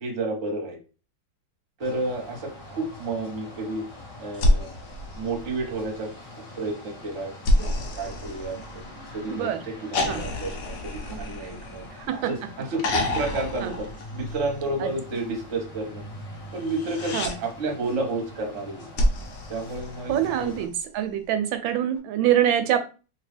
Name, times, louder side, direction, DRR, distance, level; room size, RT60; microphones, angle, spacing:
voice 1, 0.0-0.8 1.8-3.8 4.2-4.7 5.1-8.8 9.1-11.8 12.1-13.9 14.1-16.0 16.5-18.9 19.5-20.6, right 2 dB, 50° right, 2 dB, 1.0 m, -31 dB
sound 1, 1.8-20.7, left 1 dB, 30° left, 1.2 m, -43 dB
sound 2, 4.3-5.9 7.4-9.1 9.9-12.2 12.8-14.6 16.6-17.4 19.0-20.4 22.0-22.1, left 1 dB, 80° left, 0.7 m, -28 dB
voice 2, 20.1-20.7 20.9-22.8, right 11 dB, 80° right, 8 dB, 1.3 m, -24 dB
2.9 x 2.6 x 3.3 m, 0.34 s
omnidirectional pair, 2.2 m